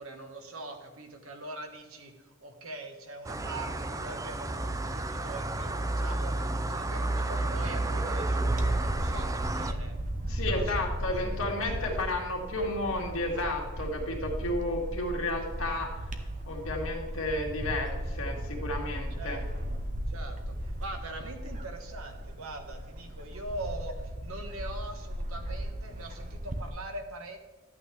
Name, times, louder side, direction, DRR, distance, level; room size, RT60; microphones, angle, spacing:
voice 1, 0.0-6.3 6.7-10.0 10.5-10.8 11.2-11.4 11.7-11.9 19.1-19.7 20.1-27.4, right 2 dB, 80° right, 5 dB, 1.4 m, -43 dB
sound 1, 3.2-9.7, right 2 dB, 15° right, 0.4 m, -31 dB
Bird / Wind, 8.4-26.7, equal, 40° right, 0.9 m, -36 dB
voice 2, 10.3-15.9 16.5-19.4, left 1 dB, 70° left, 0 dB, 2.1 m, -32 dB
12.5 x 8.7 x 3.4 m, 1.2 s
head